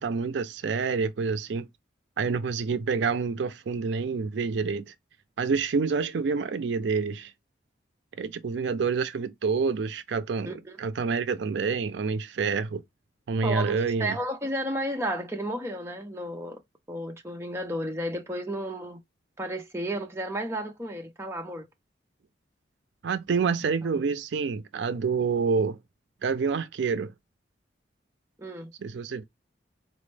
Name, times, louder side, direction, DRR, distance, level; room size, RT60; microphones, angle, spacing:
voice 1, 0.0-1.7 2.2-4.8 5.4-7.3 8.2-12.8 13.3-14.2 23.0-25.8 26.2-27.1 28.8-29.2, right 5 dB, 75° right, 0.4 m, -27 dB
voice 2, 10.5-10.8 13.4-16.6 16.9-19.0 19.4-21.7 23.4-23.5 23.8-23.9 28.4-28.7, right 1 dB, 15° right, 0.5 m, -32 dB
4.2 x 2.1 x 3.2 m
head